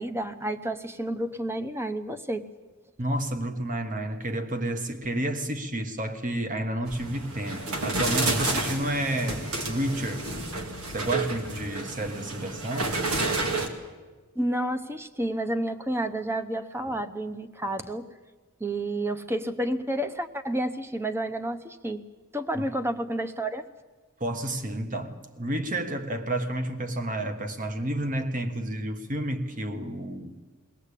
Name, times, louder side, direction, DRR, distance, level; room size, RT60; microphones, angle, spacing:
voice 1, 0.0-2.4 14.4-18.1 18.6-22.0 22.3-23.7, right 1 dB, 10° right, 0.9 m, -30 dB
voice 2, 3.0-10.2 10.9-13.0 22.5-22.7 24.2-30.3, right 1 dB, 35° right, 1.4 m, -30 dB
sound 1, 6.9-13.7, right 2 dB, 80° right, 2.3 m, -30 dB
22.0 x 17.5 x 8.4 m
head